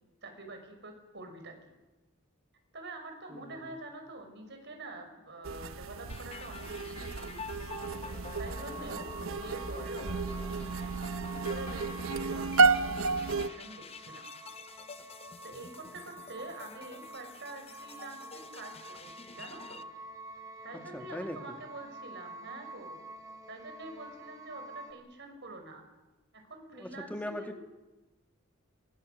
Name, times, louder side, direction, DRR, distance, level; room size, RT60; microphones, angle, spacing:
voice 1, 0.2-1.7 2.7-7.6 8.4-14.3 15.4-19.8 20.6-23.0 23.5-25.8 26.3-27.6, right 2 dB, 55° right, 5 dB, 5.7 m, -46 dB
voice 2, 3.3-3.8 20.9-21.4 26.7-27.6, left 1 dB, 5° left, 5 dB, 2.2 m, -40 dB
sound 1, 5.4-13.5, right 4 dB, 80° right, 0.8 m, -31 dB
sound 2, 6.1-19.8, left 4 dB, 30° left, 0.9 m, -48 dB
sound 3, 7.7-24.9, right 2 dB, 15° right, 3.8 m, -49 dB
27.0 x 24.0 x 6.7 m, 1.1 s
head